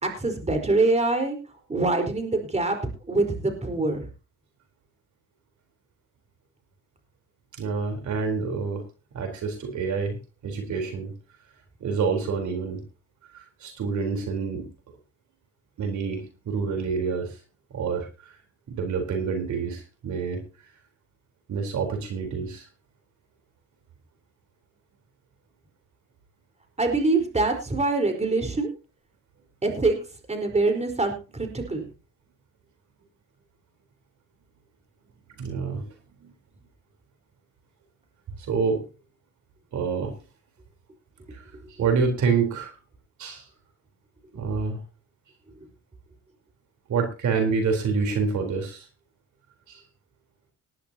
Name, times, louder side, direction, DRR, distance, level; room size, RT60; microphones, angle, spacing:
voice 1, 0.0-1.4 1.7-2.8 3.0-4.1 26.8-28.7 29.6-30.0 30.3-31.9, right 3 dB, 20° right, 4 dB, 4.5 m, -24 dB
voice 2, 7.6-8.8 9.1-10.2 10.4-11.1 11.8-12.8 13.3-14.7 15.8-17.4 17.7-18.1 18.7-20.4 21.5-22.7 35.4-35.9 36.2-36.3 38.4-38.8 39.7-40.1 41.3-41.4 41.8-42.7 43.2-43.4 44.3-44.8 46.9-48.9 49.7-49.8, right 5 dB, 70° right, 5 dB, 4.1 m, -27 dB
19.5 x 11.5 x 2.9 m, 0.32 s
cardioid pair, 90°, 30 cm